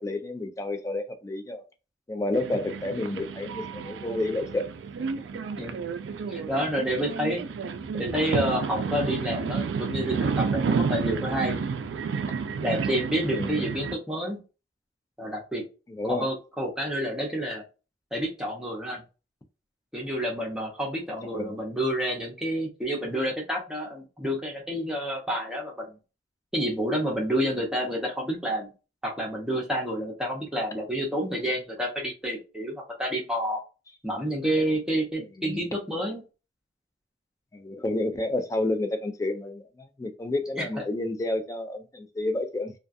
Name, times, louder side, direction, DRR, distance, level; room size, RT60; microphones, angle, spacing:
voice 1, 0.0-1.6 2.1-4.7 13.3-13.6 15.9-16.3 21.3-21.6 35.4-35.6 37.5-39.6 40.0-42.7, left 2 dB, 20° left, 0.3 m, -30 dB
sound 1, 2.3-14.0, right 5 dB, 80° right, 0.3 m, -31 dB
voice 2, 6.3-7.4 8.0-11.6 12.6-14.4 15.2-15.6 16.0-17.6 18.1-19.0 19.9-25.9 26.5-28.7 29.0-33.6 34.0-36.2 40.6-40.8, equal, 5° right, 0.7 m, -29 dB
2.3 x 2.3 x 2.5 m
head